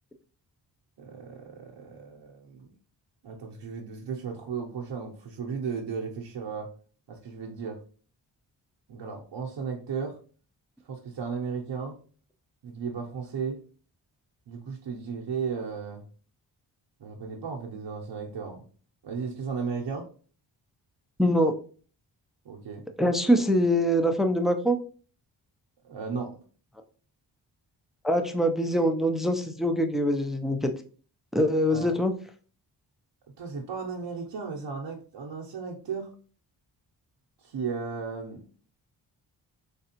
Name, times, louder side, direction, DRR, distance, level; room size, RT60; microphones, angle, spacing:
voice 1, 1.0-2.7 3.2-6.7 7.1-7.8 8.9-10.2 10.8-12.0 12.6-13.6 14.5-16.0 17.0-18.6 19.0-20.1 22.4-22.8 25.8-26.4 31.7-31.9 33.4-36.1 37.4-38.4, right 5 dB, 65° right, 0 dB, 0.8 m, -35 dB
voice 2, 21.2-21.5 23.0-24.8 28.0-30.7 31.3-32.1, equal, ahead, 6 dB, 0.5 m, -24 dB
3.6 x 3.2 x 2.9 m, 0.41 s
cardioid pair, 55°, 46 cm